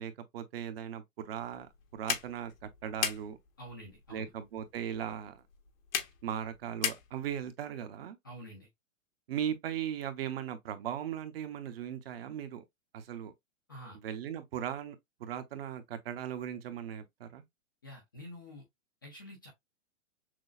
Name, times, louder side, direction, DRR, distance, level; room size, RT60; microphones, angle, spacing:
voice 1, 0.0-1.7 1.9-3.4 4.1-5.4 6.2-8.2 9.3-12.6 12.9-13.3 14.0-17.4, right 9 dB, 50° right, 0.8 m, -38 dB
sound 1, 1.4-7.5, left 8 dB, 85° left, 1.1 m, -39 dB
voice 2, 3.6-4.3 8.2-8.7 13.7-14.0 17.8-18.6 19.0-19.5, equal, 20° left, 0.3 m, -48 dB
6.1 x 2.1 x 2.4 m
hypercardioid pair, 165°, 40 cm